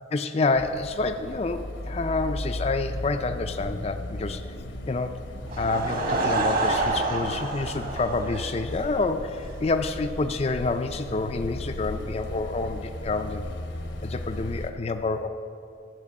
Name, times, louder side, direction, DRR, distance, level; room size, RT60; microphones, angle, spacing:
voice 1, 0.1-4.4 4.8-5.2 5.5-13.5 14.0-15.3, left 3 dB, 30° left, 7 dB, 0.4 m, -28 dB
sound 1, 0.5-14.7, left 1 dB, 70° left, 0.9 m, -36 dB
Laughter / Crowd, 5.5-9.0, right 2 dB, 45° right, 1.3 m, -27 dB
12.0 x 6.8 x 8.4 m, 2.5 s
head